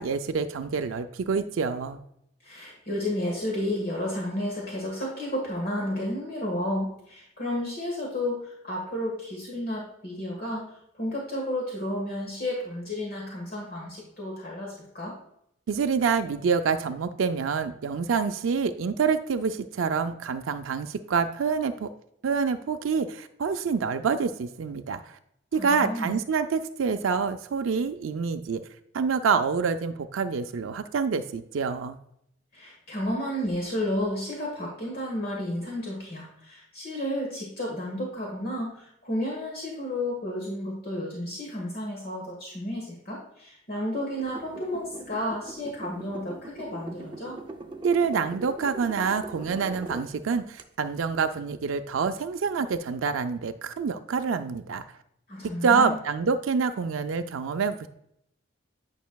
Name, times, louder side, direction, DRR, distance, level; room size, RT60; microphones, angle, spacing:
voice 1, 0.0-2.0 15.7-21.9 22.2-25.2 25.5-28.6 28.9-32.0 47.8-54.8 55.6-57.9, right 5 dB, 80° right, 8 dB, 0.4 m, -27 dB
voice 2, 2.4-10.6 11.0-15.1 25.5-26.1 32.5-47.4 55.3-55.9, left 1 dB, 50° left, -2 dB, 1.5 m, -32 dB
sound 1, 44.2-50.1 50.6-50.7, right 2 dB, 25° right, 0.5 m, -41 dB
9.2 x 5.5 x 2.3 m, 0.74 s
head